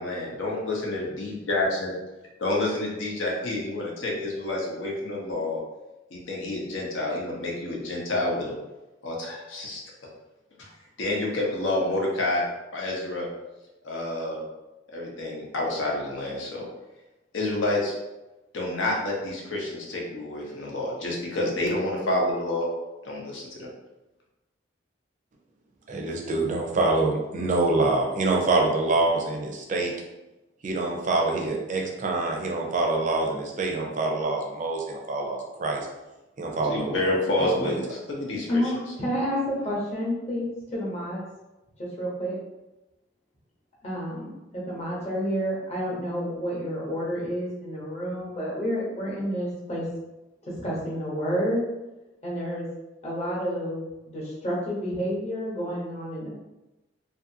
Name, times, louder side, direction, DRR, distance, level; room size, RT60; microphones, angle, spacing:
voice 1, 0.0-1.9 2.4-5.6 6.1-8.5 9.0-9.8 10.6-10.7 11.0-12.4 12.7-13.3 13.8-14.4 14.9-16.7 17.3-17.9 18.5-22.7 23.0-23.7 36.6-38.6, left 2 dB, 85° left, -2 dB, 0.7 m, -28 dB
voice 2, 25.9-29.9 30.6-35.9 36.4-37.0 37.4-37.8, right 2 dB, 40° right, 0 dB, 0.4 m, -25 dB
voice 3, 38.5-41.2 41.8-42.3 43.8-49.9 50.5-51.6 52.2-52.7 53.0-56.3, equal, 35° left, -5 dB, 0.9 m, -29 dB
2.6 x 2.5 x 2.6 m, 1.0 s
head